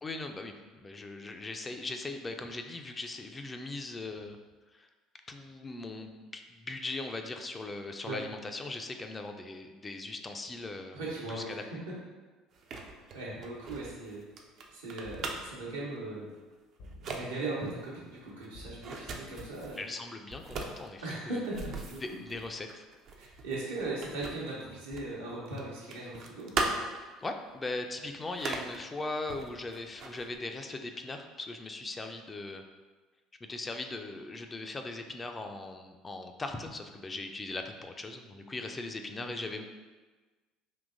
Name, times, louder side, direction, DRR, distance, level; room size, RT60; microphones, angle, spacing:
voice 1, 0.0-4.4 4.7-4.9 5.3-11.0 11.3-11.6 19.8-21.4 22.0-22.9 27.0-32.6 33.4-39.6, left 2 dB, 25° left, 5 dB, 0.3 m, -39 dB
voice 2, 10.9-11.9 13.1-14.2 14.7-16.3 17.0-19.8 21.0-22.0 23.2-26.7 39.1-39.3, right 2 dB, 80° right, -6 dB, 0.9 m, -38 dB
sound 1, 12.5-15.6 16.3-16.5 16.8-17.2 17.6-19.8 20.3-25.2 25.4-27.1 27.6-27.7 28.2-28.8 29.3-30.4, right 3 dB, 50° right, 0.4 m, -39 dB
sound 2, 15.0-15.8 16.8-17.5 18.5-19.3, equal, 65° left, 0.7 m, -52 dB
3.7 x 2.7 x 2.6 m, 1.3 s
hypercardioid pair, 65°, 0 cm